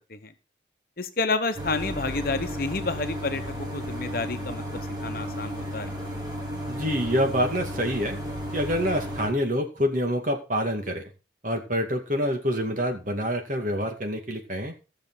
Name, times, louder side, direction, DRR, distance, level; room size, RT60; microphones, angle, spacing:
voice 1, 1.0-4.6 5.0-5.9, left 3 dB, 50° left, 8 dB, 1.1 m, -29 dB
sound 1, 1.6-9.3, equal, 20° right, 3.2 m, -33 dB
voice 2, 6.7-8.2 8.5-11.0 11.4-14.7, equal, 45° right, 4 dB, 2.3 m, -26 dB
15.5 x 6.8 x 4.0 m, 0.32 s
head